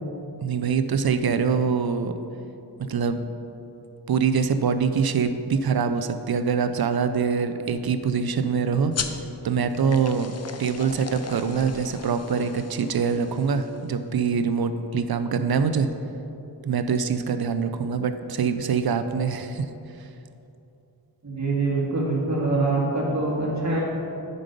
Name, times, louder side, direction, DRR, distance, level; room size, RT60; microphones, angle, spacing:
voice 1, 0.4-2.1 2.8-3.2 4.1-8.9 9.4-10.3 10.6-15.9 16.6-19.7, right 6 dB, 65° right, 9 dB, 0.6 m, -24 dB
sound 1, 8.9-14.0, left 5 dB, 40° left, 0.5 m, -37 dB
voice 2, 21.2-23.8, right 2 dB, 40° right, -4 dB, 2.0 m, -24 dB
9.0 x 5.4 x 5.2 m, 2.8 s
wide cardioid pair, 100°, 41 cm